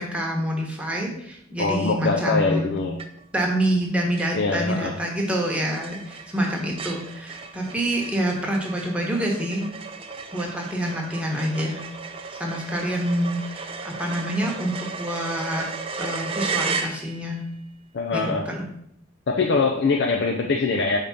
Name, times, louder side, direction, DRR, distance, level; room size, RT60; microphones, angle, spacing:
voice 1, 0.0-2.8 3.3-9.6 10.3-11.8 12.4-15.6 16.0-17.4 18.1-18.7, right 1 dB, 5° right, -1 dB, 1.2 m, -27 dB
voice 2, 1.6-3.0 4.3-5.0 17.9-18.5 19.3-21.0, left 4 dB, 55° left, 2 dB, 0.5 m, -23 dB
sound 1, 3.0-3.4 3.8-3.9 4.2-17.4, right 5 dB, 25° right, 0.4 m, -35 dB
5.1 x 3.6 x 5.6 m, 0.75 s
head